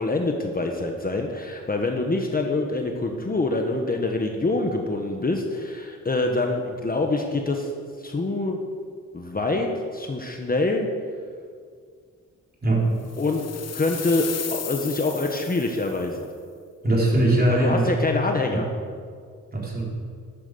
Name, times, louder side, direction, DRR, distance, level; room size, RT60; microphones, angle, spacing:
voice 1, 0.0-7.7 8.0-8.6 9.1-10.9 13.2-16.3 17.5-18.7, left 2 dB, 30° left, 3 dB, 1.3 m, -25 dB
sound 1, 13.1-16.1, left 8 dB, 55° left, 0.9 m, -35 dB
voice 2, 16.8-17.9 18.5-18.6 19.5-19.8, right 1 dB, 30° right, -3 dB, 4.2 m, -21 dB
12.0 x 12.0 x 6.9 m, 2.1 s
wide cardioid pair, 120°, 31 cm